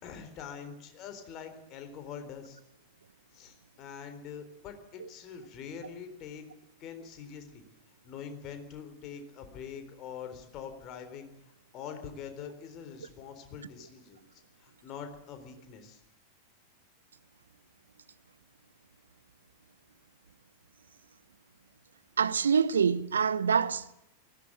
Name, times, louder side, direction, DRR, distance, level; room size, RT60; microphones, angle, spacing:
voice 1, 0.0-2.6 3.3-6.4 6.8-7.6 8.0-11.3 11.7-16.0, left 7 dB, 35° left, 3.9 m, -44 dB
voice 2, 22.2-23.9, right 6 dB, 70° right, 0.8 m, -26 dB
18.5 x 16.5 x 9.2 m
figure-of-eight pair, 90°, 0 cm